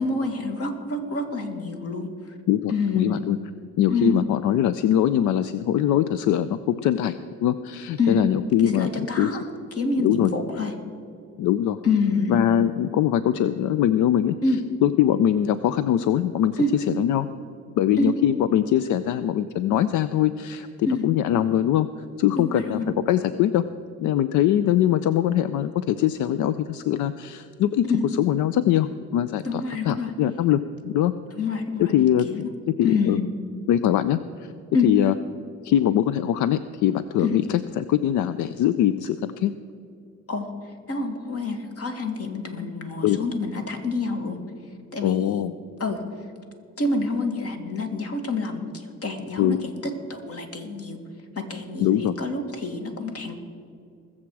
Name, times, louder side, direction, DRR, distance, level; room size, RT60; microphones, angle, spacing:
voice 1, 0.0-2.1 2.7-3.1 3.9-4.1 8.0-8.2 8.6-9.4 9.8-10.7 11.8-12.3 14.4-14.6 16.6-16.7 18.0-18.1 20.8-21.1 22.4-22.9 27.9-28.0 29.4-30.1 31.3-31.9 32.2-32.4 32.8-33.2 34.7-34.9 37.2-37.4 40.3-40.5 40.9-44.4 44.9-45.4 45.8-46.0 46.8-51.0 51.4-53.3, left 3 dB, 50° left, 5 dB, 2.1 m, -27 dB
voice 2, 2.5-3.4 3.8-9.3 10.0-10.3 11.4-11.8 12.3-14.4 14.8-17.3 17.8-21.9 22.2-23.6 24.0-27.8 28.2-31.1 31.8-33.2 33.7-34.5 34.8-35.1 35.6-39.5 43.0-43.2 45.0-45.5 49.4-49.6 51.8-52.2, left 11 dB, 80° left, 13 dB, 0.5 m, -22 dB
21.0 x 7.4 x 4.7 m, 2.5 s
cardioid pair, 90°, 30 cm